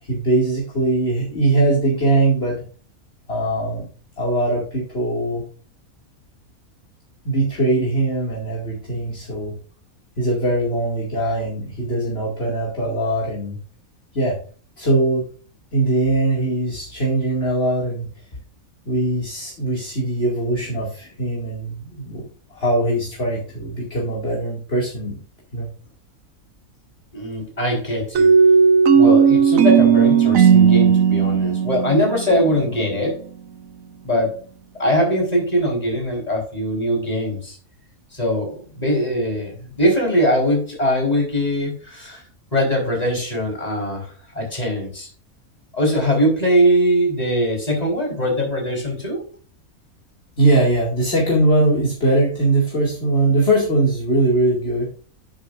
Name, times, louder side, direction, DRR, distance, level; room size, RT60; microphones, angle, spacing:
voice 1, 0.0-2.6 3.3-3.9 4.2-5.4 7.2-9.5 10.2-13.6 14.1-14.4 14.8-15.2 15.7-18.1 18.8-22.3 22.5-25.2 25.5-25.7 50.4-54.9, right 2 dB, 45° left, -4 dB, 2.7 m, -21 dB
voice 2, 27.1-28.3 28.9-33.2 34.0-34.3 34.7-37.6 38.1-42.2 42.5-45.1 45.7-49.3, equal, 25° left, 0 dB, 4.4 m, -21 dB
sound 1, 28.1-32.8, right 6 dB, 70° right, 1.1 m, -14 dB
10.5 x 9.7 x 2.5 m, 0.40 s
omnidirectional pair, 1.5 m